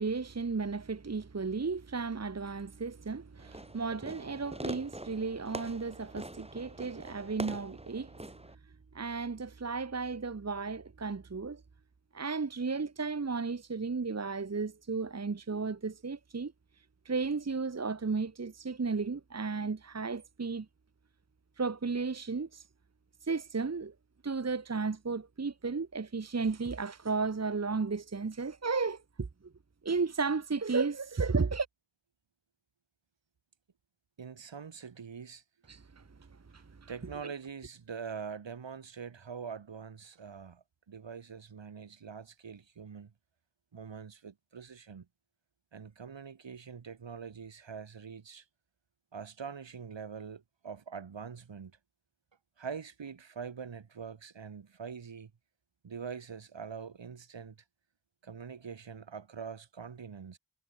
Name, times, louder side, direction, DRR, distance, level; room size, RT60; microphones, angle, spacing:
voice 1, 0.0-8.1 8.9-11.6 12.1-16.5 17.0-20.7 21.6-22.6 23.2-23.9 24.2-29.3 29.8-31.7 35.7-36.0 36.5-36.9, right 4 dB, 35° right, 1.6 m, -34 dB
Fireworks, 3.4-8.5, right 1 dB, 15° right, 5.8 m, -44 dB
voice 2, 34.2-35.4 36.6-43.1 43.7-45.1 45.7-48.4 49.1-51.8 52.6-55.3 55.8-57.6 58.2-60.4, right 6 dB, 75° right, 6.2 m, -44 dB
cardioid pair, 55°, 44 cm